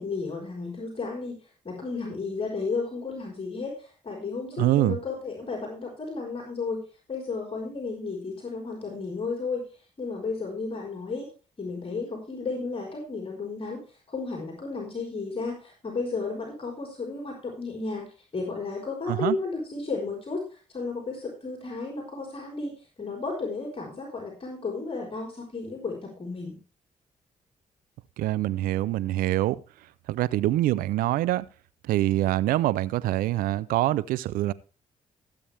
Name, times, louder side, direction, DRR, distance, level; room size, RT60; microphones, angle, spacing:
voice 1, 0.0-1.3 1.6-6.8 7.1-9.6 10.0-11.3 11.6-13.8 14.1-18.0 18.3-26.6, left 4 dB, 40° left, 0 dB, 4.3 m, -33 dB
voice 2, 4.6-5.0 19.1-19.4 28.2-29.6 30.1-31.5 31.9-34.5, right 15 dB, 85° right, 20 dB, 0.5 m, -25 dB
15.5 x 8.6 x 3.4 m, 0.35 s
supercardioid pair, 60°, 14 cm